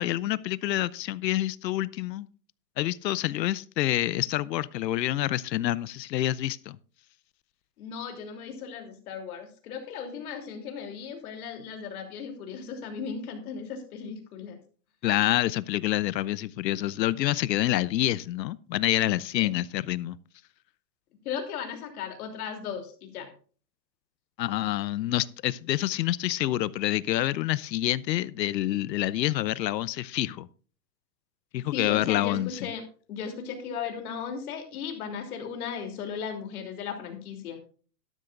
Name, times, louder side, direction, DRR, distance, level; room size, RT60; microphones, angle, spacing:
voice 1, 0.0-2.3 2.8-6.8 15.0-20.2 24.4-30.5 31.5-32.6, left 14 dB, 85° left, 20 dB, 0.7 m, -27 dB
voice 2, 7.8-14.6 19.4-19.5 21.2-23.3 31.7-32.8 33.1-37.6, left 6 dB, 60° left, 4 dB, 3.2 m, -36 dB
12.5 x 12.0 x 2.5 m, 0.40 s
hypercardioid pair, 150°, 49 cm